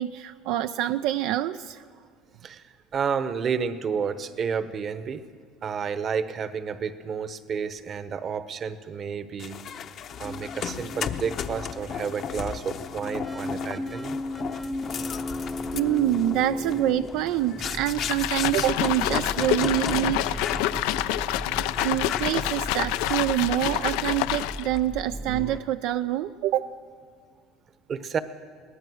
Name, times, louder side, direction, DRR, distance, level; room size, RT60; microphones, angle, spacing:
voice 1, 0.0-1.8 15.7-20.4 21.8-26.8, right 13 dB, 75° right, 10 dB, 0.4 m, -26 dB
voice 2, 2.4-5.2 5.6-9.6 10.2-14.2 27.9-28.2, right 6 dB, 35° right, 12 dB, 1.0 m, -31 dB
sound 1, 9.4-20.1 20.4-20.7 21.1-21.3 21.8-22.6 23.1-23.5, left 8 dB, 45° left, 0.8 m, -35 dB
sound 2, 10.2-25.6, left 1 dB, ahead, 0.6 m, -36 dB
sound 3, 17.9-24.8, left 15 dB, 85° left, 0.5 m, -27 dB
22.5 x 18.0 x 6.3 m, 2.1 s
cardioid pair, 130°, 0 cm